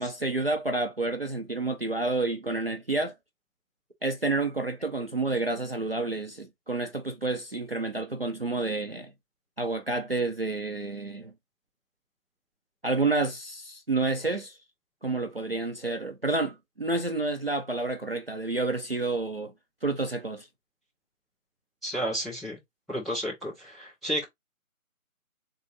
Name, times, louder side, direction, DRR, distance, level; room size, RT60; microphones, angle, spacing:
voice 1, 0.0-3.1 4.0-9.1 9.6-11.3 12.8-14.6 15.0-19.5 19.8-20.5, right 3 dB, 45° right, 0.5 m, -29 dB
voice 2, 21.8-22.6 22.9-24.2, equal, ahead, 0.6 m, -32 dB
3.7 x 2.5 x 3.8 m
figure-of-eight pair, 175°, 43 cm